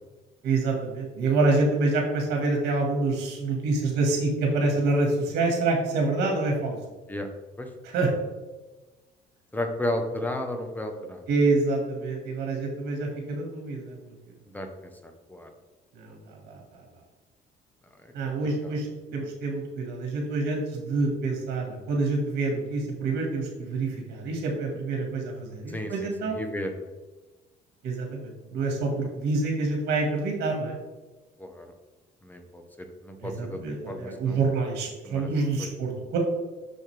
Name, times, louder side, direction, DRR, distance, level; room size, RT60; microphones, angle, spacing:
voice 1, 0.4-6.8 7.8-8.1 11.3-14.0 15.9-16.1 16.5-16.6 18.1-18.9 19.1-26.4 27.8-30.8 33.2-36.2, right 3 dB, 70° right, 0 dB, 1.8 m, -27 dB
voice 2, 9.5-11.2 14.5-14.7 15.0-15.5 18.2-18.3 18.6-18.7 19.1-19.2 25.7-26.7 31.4-31.7 32.2-32.6 33.0-33.6 33.9-34.4 35.0-35.3 35.6-35.7, left 1 dB, 10° left, 4 dB, 1.0 m, -33 dB
6.4 x 6.4 x 3.4 m, 1.2 s
cardioid pair, 110°, 17 cm